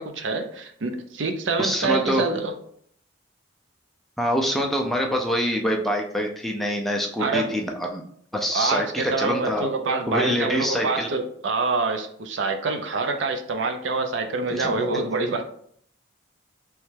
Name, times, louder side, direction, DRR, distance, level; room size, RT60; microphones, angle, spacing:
voice 1, 0.0-2.5 7.2-7.6 8.5-15.4, right 3 dB, 70° right, 6 dB, 0.5 m, -26 dB
voice 2, 1.6-2.3 4.2-8.0 8.3-9.7 10.1-11.1 14.5-14.7, equal, ahead, 0 dB, 0.4 m, -25 dB
3.3 x 3.1 x 3.3 m, 0.64 s
head